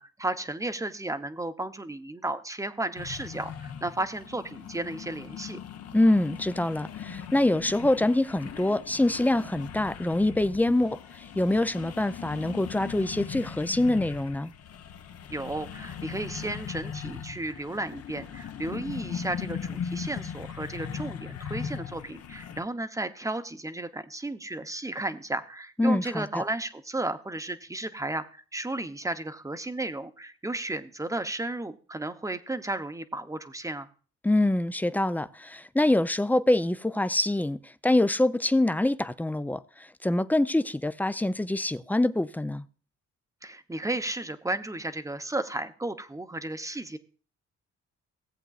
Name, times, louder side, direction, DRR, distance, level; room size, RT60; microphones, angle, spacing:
voice 1, 0.0-5.6 15.3-33.9 43.4-47.0, right 2 dB, 10° right, 0.8 m, -34 dB
sound 1, 3.0-22.6, left 7 dB, 55° left, 0.9 m, -39 dB
voice 2, 5.9-14.5 25.8-26.4 34.2-42.6, left 1 dB, 5° left, 0.4 m, -25 dB
17.0 x 7.9 x 2.4 m
cardioid pair, 90°, 30 cm